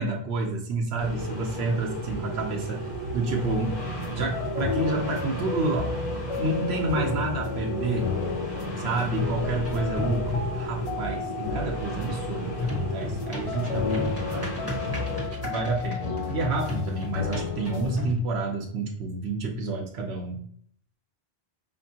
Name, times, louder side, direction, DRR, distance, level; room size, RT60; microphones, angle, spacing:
voice 1, 0.0-2.8 3.1-3.8 4.1-5.9 6.4-8.1 8.8-14.6 15.4-20.4, right 3 dB, 80° right, 0 dB, 0.9 m, -29 dB
sound 1, 1.0-15.3, right 1 dB, 80° left, 1.9 m, -35 dB
sound 2, 3.3-18.0, left 5 dB, 50° left, 0.4 m, -32 dB
sound 3, 9.6-10.7 12.7-18.2, left 2 dB, 15° right, 1.1 m, -35 dB
5.3 x 2.6 x 2.7 m, 0.63 s
omnidirectional pair, 1.1 m